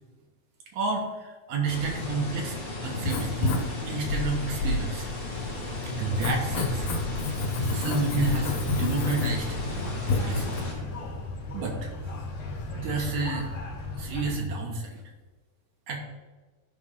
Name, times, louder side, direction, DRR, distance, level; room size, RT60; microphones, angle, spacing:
voice 1, 0.7-2.6 2.8-5.4 6.0-9.6 10.1-10.6 11.5-11.9 12.7-13.5 14.0-15.0 15.9-16.0, right 3 dB, 65° right, 1 dB, 2.4 m, -31 dB
sound 1, 1.7-10.7, left 2 dB, 40° left, 3.7 m, -35 dB
Writing, 2.9-10.6, left 2 dB, 85° left, 2.8 m, -30 dB
sound 2, 8.3-14.4, left 2 dB, 65° left, 1.0 m, -36 dB
13.0 x 5.2 x 3.7 m, 1.2 s
omnidirectional pair, 3.7 m